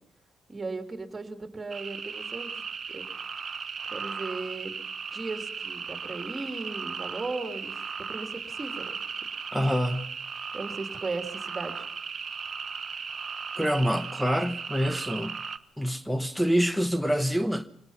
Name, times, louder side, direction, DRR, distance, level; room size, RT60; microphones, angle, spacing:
voice 1, 0.5-2.6 2.9-3.1 3.9-4.7 5.1-7.7 8.0-8.9 10.5-11.8, right 3 dB, 25° right, 3.0 m, -36 dB
sound 1, 1.7-15.6, right 6 dB, 45° right, 1.0 m, -37 dB
voice 2, 9.5-10.1 13.5-15.4 15.8-17.7, equal, ahead, 1.1 m, -26 dB
24.5 x 18.5 x 5.8 m
cardioid pair, 90°, 0 cm